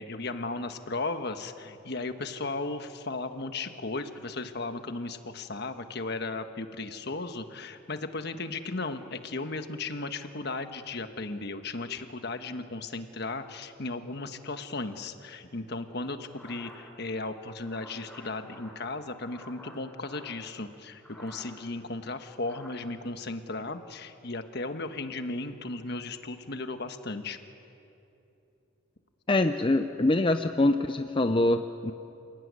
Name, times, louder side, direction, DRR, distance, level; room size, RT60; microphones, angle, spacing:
voice 1, 0.0-27.4, left 3 dB, 55° left, 8 dB, 1.3 m, -36 dB
sound 1, 16.2-20.5 20.9-21.7 22.0-22.7, left 1 dB, 5° left, 6.3 m, -50 dB
voice 2, 29.3-31.9, left 2 dB, 25° left, 8 dB, 0.6 m, -24 dB
28.5 x 16.5 x 9.6 m, 2.9 s
head